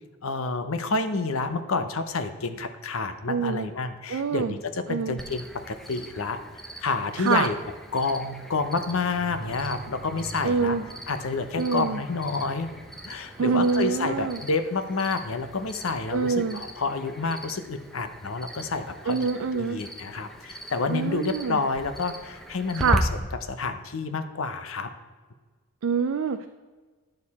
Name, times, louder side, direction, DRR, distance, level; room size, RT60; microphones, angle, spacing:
voice 1, 0.2-6.4 6.8-7.5 7.9-10.8 11.1-12.7 13.0-23.0 23.5-24.9, left 4 dB, 65° left, 10 dB, 0.7 m, -29 dB
voice 2, 3.3-3.7 4.1-4.5 4.9-5.2 7.2-7.5 10.4-10.8 11.6-12.0 13.4-14.4 16.1-16.6 19.1-19.8 20.9-21.6 22.8-23.0 25.8-26.5, right 5 dB, 65° right, 8 dB, 0.4 m, -25 dB
Cricket, 5.2-23.0, equal, ahead, 0.6 m, -39 dB
sound 1, 8.2-17.3 17.7-17.8, right 2 dB, 40° right, 1.1 m, -47 dB
10.5 x 6.6 x 4.2 m, 1.4 s
head